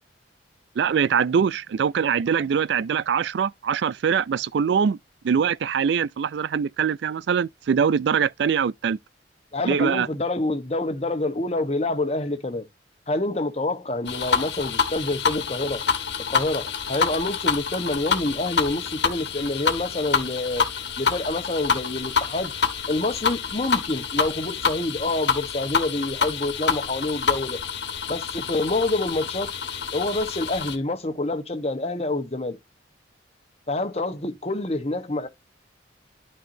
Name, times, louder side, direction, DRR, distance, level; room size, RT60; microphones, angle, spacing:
voice 1, 0.8-5.0 5.2-9.0 9.6-10.1, right 7 dB, 65° right, 0.3 m, -23 dB
voice 2, 9.5-12.7 13.1-15.8 16.3-20.6 21.0-22.5 22.9-27.6 28.1-29.5 29.9-32.6 33.7-35.3, left 2 dB, 35° left, 1.2 m, -27 dB
sound 1, 14.1-30.8, left 6 dB, 65° left, 1.5 m, -27 dB
12.0 x 4.5 x 2.7 m
head